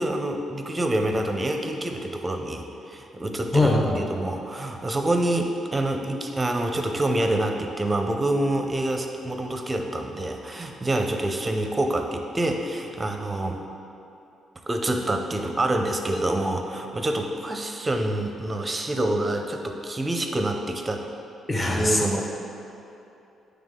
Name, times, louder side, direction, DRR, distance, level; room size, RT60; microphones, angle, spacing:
voice 1, 0.0-3.7 4.0-13.6 14.7-21.0 21.6-22.2, right 1 dB, 20° right, 4 dB, 0.6 m, -27 dB
voice 2, 3.5-4.0 21.5-22.2, left 2 dB, 20° left, -1 dB, 1.0 m, -22 dB
8.8 x 3.4 x 3.7 m, 2.8 s
cardioid pair, 90°, 0 cm